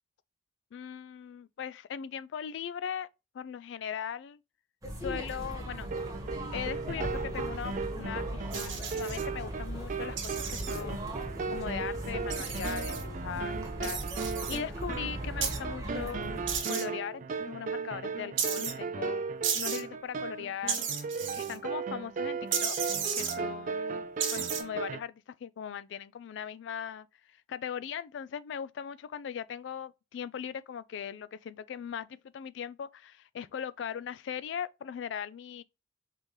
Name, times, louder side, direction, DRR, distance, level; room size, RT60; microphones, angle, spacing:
voice 1, 0.7-3.1 3.3-4.4 5.0-5.9 6.5-11.1 11.5-16.3 16.7-19.2 19.5-20.9 21.3-22.8 23.1-27.1 27.5-35.6, left 8 dB, 70° left, 0.3 m, -39 dB
sound 1, 4.8-16.6, right 1 dB, 20° right, 1.2 m, -39 dB
sound 2, 5.8-25.0, right 5 dB, 45° right, 0.3 m, -37 dB
sound 3, 8.5-9.2 10.2-10.8 12.3-13.0 13.8-14.6 15.4-15.6 16.5-16.8 18.4-18.7 19.4-19.8 20.7-21.6 22.5-23.3 24.2-24.6, right 7 dB, 85° right, 1.1 m, -33 dB
4.1 x 3.6 x 3.1 m
head